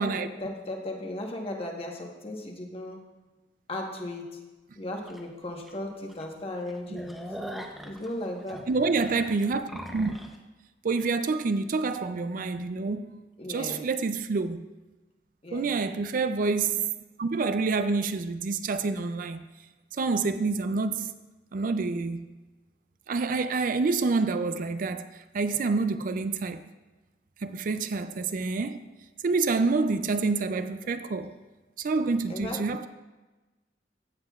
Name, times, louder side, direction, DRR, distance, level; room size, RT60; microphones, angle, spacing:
voice 1, 0.4-3.0 3.7-4.4 4.8-7.2 7.8-8.6 13.4-13.8 15.4-15.7 32.3-32.6, left 1 dB, 35° left, 1.2 m, -36 dB
sound 1, 5.1-5.2 5.7-5.8 6.1-6.2 6.6-10.4, equal, ahead, 0.7 m, -41 dB
voice 2, 8.7-10.1 10.8-13.2 13.5-14.7 15.5-16.9 17.2-19.4 20.0-21.1 21.5-22.3 23.1-25.1 25.3-26.6 27.4-28.8 29.2-31.3 31.8-32.9, right 4 dB, 50° right, 0.4 m, -27 dB
15.5 x 7.6 x 2.4 m
head